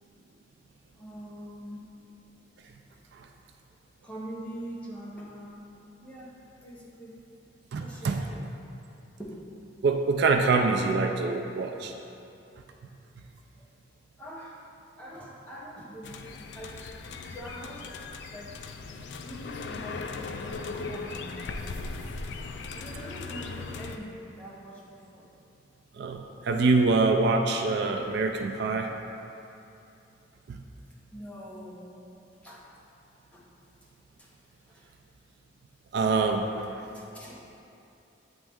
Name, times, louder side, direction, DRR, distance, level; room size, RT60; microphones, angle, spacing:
voice 1, 0.9-1.8 4.0-5.6 6.0-6.3 6.6-7.1 7.8-8.4 9.2-9.5 14.2-14.7 15.0-17.9 18.3-18.9 19.2-21.4 22.7-25.3 31.1-31.9 32.4-32.7 33.3-33.5 34.2-34.3 34.7-34.9 36.9-37.6, equal, 5° left, -6 dB, 0.8 m, -43 dB
voice 2, 7.7-8.2 9.8-11.9 26.0-28.9 30.5-30.6 35.9-36.8, right 3 dB, 60° right, 4 dB, 0.3 m, -25 dB
sound 1, 16.0-24.0, left 4 dB, 65° left, 0.3 m, -38 dB
8.7 x 3.1 x 3.5 m, 2.7 s
head